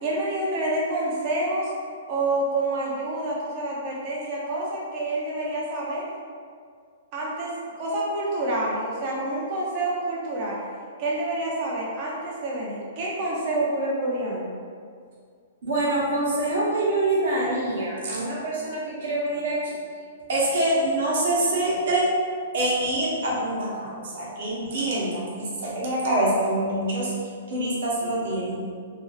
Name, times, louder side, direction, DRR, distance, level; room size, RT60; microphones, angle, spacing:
voice 1, 0.0-1.7 2.1-6.1 7.1-10.6 11.0-14.5, right 2 dB, 30° right, -4 dB, 0.5 m, -28 dB
voice 2, 15.6-19.7 20.3-22.1 22.5-27.1 27.5-28.6, right 1 dB, 55° right, -6 dB, 0.8 m, -25 dB
3.1 x 2.4 x 2.3 m, 2.1 s
hypercardioid pair, 170°, 0 cm